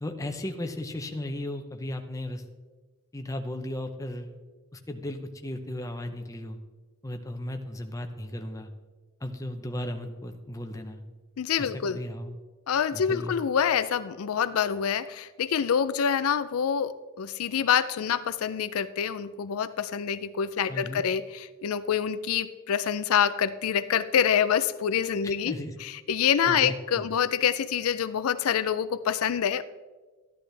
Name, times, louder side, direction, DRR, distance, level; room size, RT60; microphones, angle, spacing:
voice 1, 0.0-2.4 3.1-4.3 4.7-6.6 7.0-8.7 9.2-11.0 11.6-12.4 12.9-13.4 20.7-21.0 25.2-25.8 26.4-27.1, left 1 dB, 15° left, 5 dB, 0.7 m, -35 dB
voice 2, 11.4-12.0 12.7-29.6, left 8 dB, 85° left, 14 dB, 0.4 m, -26 dB
13.0 x 10.5 x 3.3 m, 1.3 s
head